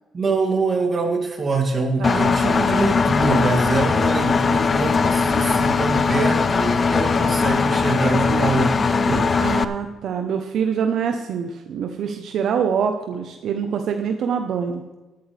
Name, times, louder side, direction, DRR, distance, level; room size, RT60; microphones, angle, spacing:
voice 1, 0.1-9.3, right 3 dB, 40° right, 2 dB, 2.8 m, -24 dB
Engine, 2.0-9.6, left 5 dB, 40° left, 0.7 m, -20 dB
voice 2, 2.0-2.7 9.4-14.9, right 7 dB, 70° right, 5 dB, 1.0 m, -25 dB
13.0 x 11.5 x 3.5 m, 1.2 s
cardioid pair, 90°, 0 cm